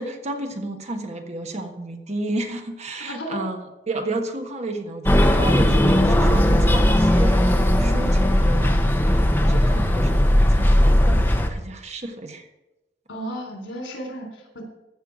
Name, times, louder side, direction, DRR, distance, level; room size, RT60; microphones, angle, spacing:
voice 1, 0.0-12.5, right 2 dB, 35° right, 5 dB, 1.4 m, -32 dB
voice 2, 3.0-3.4 13.1-14.6, equal, 85° left, 2 dB, 3.5 m, -34 dB
sound 1, 5.1-11.5, left 1 dB, 10° left, 1.0 m, -17 dB
15.0 x 5.6 x 7.6 m, 1.0 s
head